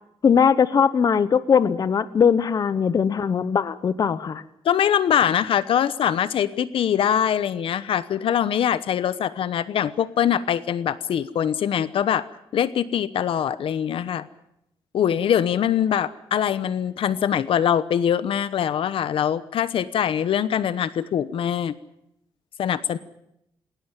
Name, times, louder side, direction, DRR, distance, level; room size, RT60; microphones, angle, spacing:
voice 1, 0.2-4.4, left 6 dB, 45° left, 15 dB, 0.8 m, -20 dB
voice 2, 4.6-12.3 12.5-14.3 14.9-21.7 22.6-23.0, left 9 dB, 75° left, 15 dB, 1.0 m, -23 dB
19.5 x 19.0 x 9.0 m, 0.80 s
wide cardioid pair, 145°, 9 cm